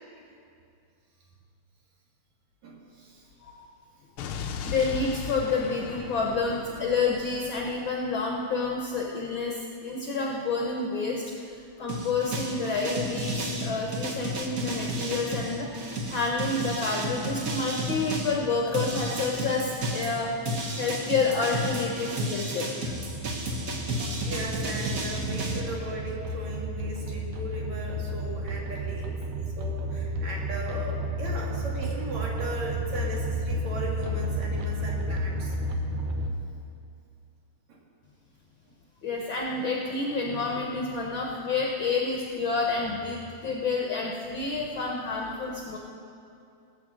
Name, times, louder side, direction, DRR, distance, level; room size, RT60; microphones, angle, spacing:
voice 1, 2.6-3.2 24.2-29.1 29.6-35.5 37.7-37.8, right 1 dB, 65° right, -3 dB, 3.3 m, -37 dB
Explosion, 4.2-8.2, left 6 dB, 85° left, 1.2 m, -38 dB
voice 2, 4.6-11.2 11.5-20.3 20.8-23.0 39.0-45.8, left 4 dB, 65° left, 0 dB, 1.3 m, -29 dB
sound 1, 11.9-18.4 18.7-25.6, right 1 dB, 50° right, 1.0 m, -32 dB
sound 2, 22.8-36.3, equal, 85° right, 2.5 m, -32 dB
19.0 x 6.3 x 7.5 m, 2.6 s
omnidirectional pair, 3.4 m